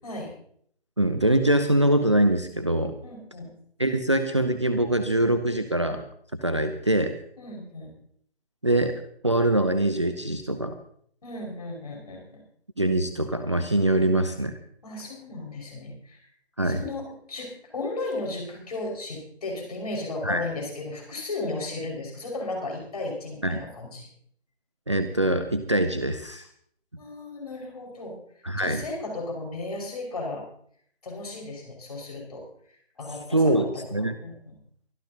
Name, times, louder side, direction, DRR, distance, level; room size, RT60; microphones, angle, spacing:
voice 1, 0.0-0.3 3.0-3.5 7.4-8.0 11.2-12.4 14.8-16.3 16.6-24.1 27.0-28.2 28.6-30.5 31.0-32.5 33.0-33.7 34.2-34.6, left 2 dB, 35° left, 0 dB, 5.5 m, -35 dB
voice 2, 1.0-3.0 3.8-6.0 6.4-7.2 8.6-8.9 9.2-10.7 12.8-14.6 16.6-16.8 20.2-20.4 23.4-23.6 24.9-26.5 28.4-28.8 33.3-34.1, right 1 dB, 30° right, 8 dB, 0.7 m, -23 dB
24.0 x 13.0 x 2.9 m, 0.63 s
figure-of-eight pair, 155°, 32 cm